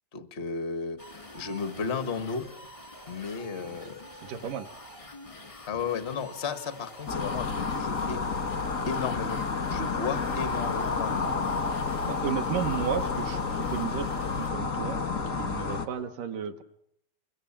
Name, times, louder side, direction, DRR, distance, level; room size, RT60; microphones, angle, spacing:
voice 1, 0.1-1.0 1.3-2.5 3.1-4.0 5.7-8.2 8.9-9.4 9.7-11.3, left 5 dB, 75° left, 9 dB, 0.6 m, -33 dB
sound 1, 1.0-14.5, left 1 dB, 20° left, 0.8 m, -47 dB
voice 2, 4.2-4.7 12.1-15.0 15.4-16.6, right 8 dB, 70° right, 6 dB, 2.7 m, -33 dB
sound 2, 7.1-15.8, left 4 dB, 50° left, 0.9 m, -30 dB
29.0 x 23.5 x 7.4 m, 0.72 s
omnidirectional pair, 4.1 m